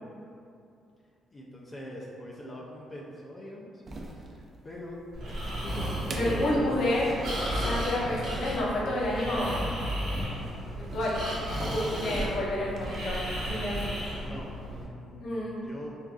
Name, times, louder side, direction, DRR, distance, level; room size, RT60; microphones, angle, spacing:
voice 1, 1.3-5.0 5.5-6.6 11.9-12.1 14.2-15.9, left 1 dB, 30° left, -4 dB, 0.4 m, -43 dB
sound 1, 3.8-14.1, right 2 dB, 40° right, 0.4 m, -43 dB
Breathing, 5.1-14.8, equal, 75° right, 0.9 m, -34 dB
voice 2, 6.1-7.1 7.5-9.6 10.9-11.2 11.6-13.9 15.2-15.6, left 1 dB, 65° left, -5 dB, 0.7 m, -29 dB
3.7 x 2.5 x 2.3 m, 2.6 s
cardioid pair, 90°, 0 cm